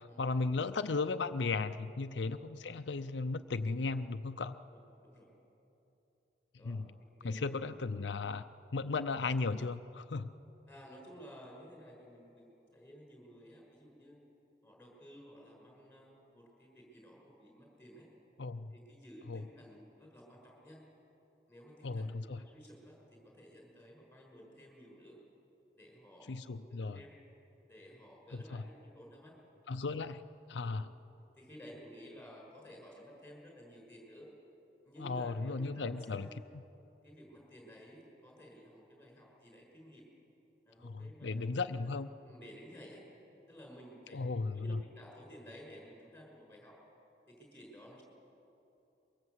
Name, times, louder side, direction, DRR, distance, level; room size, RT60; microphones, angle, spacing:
voice 1, 0.0-4.6 6.6-6.9 7.2-8.4 8.7-10.3 18.4-18.7 19.3-19.4 21.8-22.5 26.3-27.0 28.3-28.6 29.7-30.2 30.5-30.9 35.0-36.3 36.5-36.6 40.8-42.1 44.1-44.8, left 3 dB, 90° left, 9 dB, 0.6 m, -36 dB
voice 2, 4.7-5.3 6.6-7.4 10.7-14.2 14.6-18.1 18.7-20.8 21.5-25.2 25.8-27.2 27.7-29.3 30.6-30.8 31.4-34.3 34.8-36.3 37.0-40.1 40.7-42.0 42.2-43.1 43.5-44.2 44.5-46.7 47.3-48.0, equal, 10° left, -1 dB, 5.8 m, -54 dB
23.5 x 22.5 x 8.0 m, 2.9 s
head